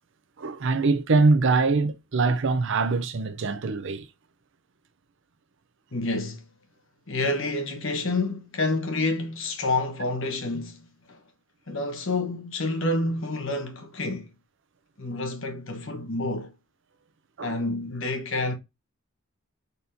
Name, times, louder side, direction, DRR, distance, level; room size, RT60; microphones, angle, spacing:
voice 1, 0.4-4.1 17.4-17.6, right 3 dB, 60° right, 0.6 m, -23 dB
voice 2, 5.9-6.5 7.1-11.2 11.7-14.3 15.0-16.5 17.4-18.5, left 2 dB, 65° left, 1.4 m, -28 dB
4.2 x 3.5 x 2.8 m
head